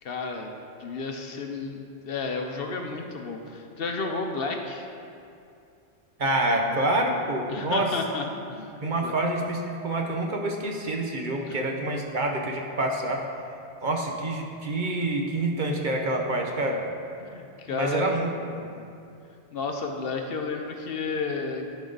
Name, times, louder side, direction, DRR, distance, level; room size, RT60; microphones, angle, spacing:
voice 1, 0.0-4.9 7.5-9.2 11.5-11.6 17.2-18.1 19.5-21.7, left 4 dB, 60° left, 3 dB, 0.8 m, -32 dB
voice 2, 6.2-7.9 8.8-13.3 13.8-16.8 17.7-18.6, right 1 dB, 50° right, 1 dB, 0.8 m, -27 dB
12.0 x 5.3 x 3.9 m, 2.5 s
omnidirectional pair, 1.2 m